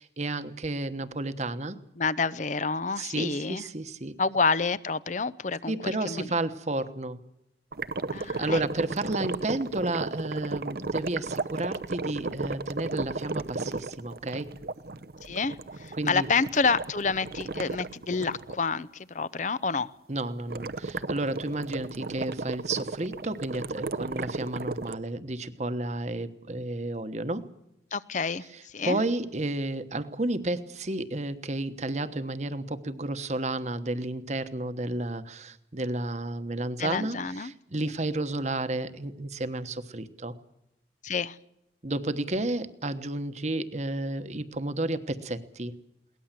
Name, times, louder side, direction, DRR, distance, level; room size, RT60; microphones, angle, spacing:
voice 1, 0.0-1.8 3.0-4.1 5.7-7.2 8.2-14.6 15.9-16.3 20.1-27.5 28.5-40.3 41.8-45.8, right 2 dB, 40° right, 11 dB, 1.2 m, -32 dB
voice 2, 2.0-3.7 4.2-6.3 8.1-8.6 15.2-19.9 27.9-29.0 36.8-37.5 41.0-41.4, left 4 dB, 40° left, 16 dB, 0.7 m, -28 dB
sound 1, 7.7-18.6 20.5-25.0, right 3 dB, 55° right, 0.8 m, -34 dB
22.0 x 18.5 x 7.5 m, 0.83 s
head